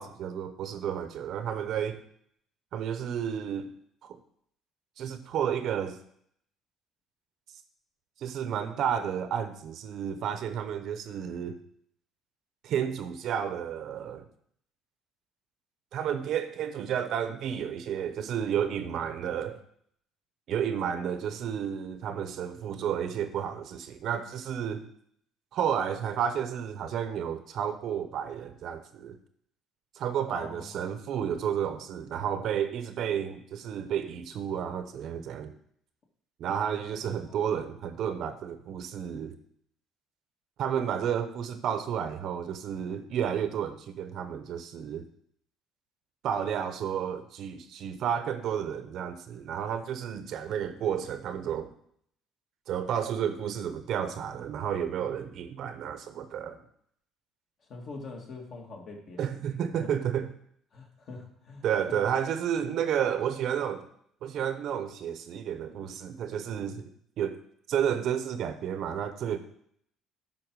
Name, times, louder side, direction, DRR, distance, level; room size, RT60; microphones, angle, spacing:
voice 1, 0.0-2.0 2.7-3.7 4.0-4.2 5.0-6.0 8.2-11.6 12.6-14.3 15.9-19.6 20.5-24.9 25.5-29.2 29.9-35.5 36.4-39.4 40.6-45.0 46.2-51.7 52.7-56.6 59.2-60.3 61.6-63.9 64.2-66.9 67.2-67.4 67.7-69.4, right 8 dB, 55° right, 10 dB, 0.8 m, -31 dB
voice 2, 30.3-30.9 36.9-37.0 37.2-37.5 57.7-59.3 59.7-59.9 60.7-62.0, left 3 dB, 45° left, 1 dB, 2.0 m, -44 dB
8.9 x 6.0 x 4.7 m, 0.67 s
cardioid pair, 135°, 0 cm